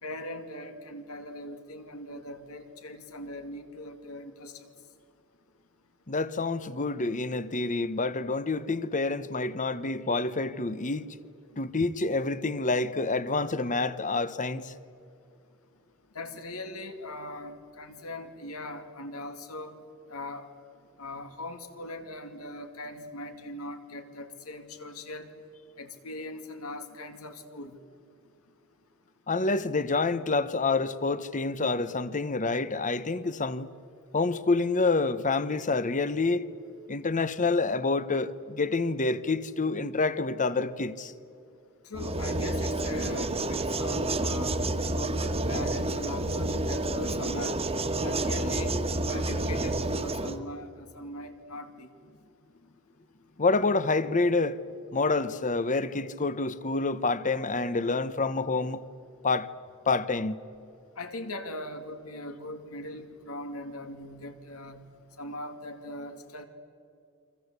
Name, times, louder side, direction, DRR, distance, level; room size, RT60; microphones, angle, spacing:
voice 1, 0.0-4.6 16.1-19.7 20.1-20.5 21.0-25.3 25.8-27.8 41.8-44.6 44.9-47.6 48.0-48.7 49.1-51.9 61.0-64.9 65.2-66.5, left 1 dB, 75° left, 2.5 m, -40 dB
voice 2, 6.1-11.1 11.6-14.7 29.3-33.7 34.1-36.4 36.9-41.1 53.4-54.6 54.9-58.8 59.2-59.5 59.9-60.4, left 3 dB, 35° left, 1.0 m, -27 dB
sound 1, 41.9-50.4, right 2 dB, 25° right, 1.6 m, -29 dB
29.0 x 24.5 x 8.2 m
head